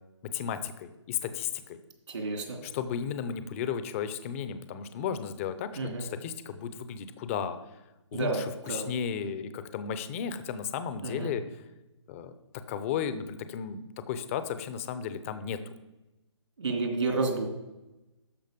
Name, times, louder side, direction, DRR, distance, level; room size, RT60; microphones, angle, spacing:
voice 1, 0.3-1.8 2.6-7.6 8.1-11.6 12.1-12.3 12.7-15.7, left 8 dB, 25° left, 11 dB, 0.6 m, -34 dB
voice 2, 2.1-2.6 5.8-6.0 8.1-8.9 11.0-11.3 16.6-17.5, right 3 dB, 70° right, 2 dB, 2.9 m, -30 dB
13.0 x 5.1 x 5.1 m, 0.99 s
hypercardioid pair, 145°, 16 cm